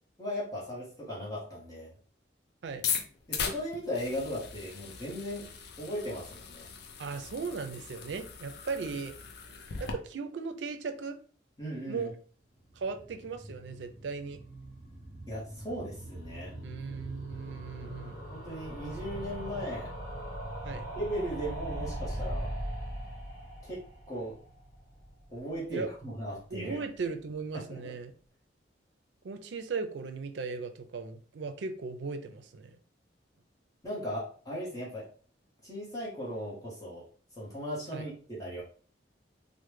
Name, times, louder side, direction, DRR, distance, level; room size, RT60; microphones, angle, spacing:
voice 1, 0.2-1.9 3.3-5.4 5.8-6.7 11.6-12.1 15.3-16.5 18.3-19.9 21.0-22.5 23.6-23.8 24.1-24.4 25.3-26.8 27.5-27.6 33.8-35.1 35.6-37.1 37.4-38.6, equal, 20° left, -7 dB, 0.9 m, -37 dB
sound 1, 2.7-9.9, left 6 dB, 60° left, 0.4 m, -39 dB
voice 2, 7.0-9.1 9.8-11.2 11.9-12.1 12.8-14.4 16.6-18.2 20.6-20.8 25.7-25.9 26.5-28.1 29.2-32.7 37.9-38.1, right 4 dB, 80° right, 7 dB, 0.4 m, -37 dB
sound 2, 12.6-25.7 25.9-26.0 26.2-26.3 26.5-26.6, right 1 dB, 45° left, 1.0 m, -41 dB
3.1 x 2.1 x 3.2 m, 0.42 s
head